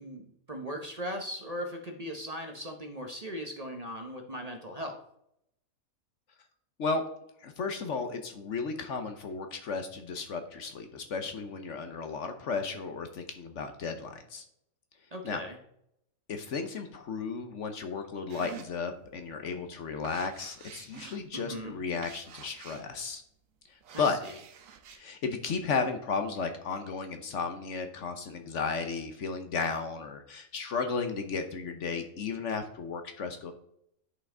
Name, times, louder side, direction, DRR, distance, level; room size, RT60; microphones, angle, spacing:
voice 1, 0.0-5.0 15.1-15.6 21.3-21.8 23.9-24.3, equal, 30° right, 3 dB, 0.9 m, -39 dB
voice 2, 7.4-14.4 15.2-15.4 16.3-23.2 24.0-24.2 24.9-33.5, left 4 dB, 60° left, 7 dB, 1.1 m, -34 dB
sound 1, 18.3-19.2 19.6-23.1 23.7-25.0, right 8 dB, 65° right, 1.1 m, -49 dB
9.8 x 5.6 x 3.8 m, 0.74 s
omnidirectional pair, 1.5 m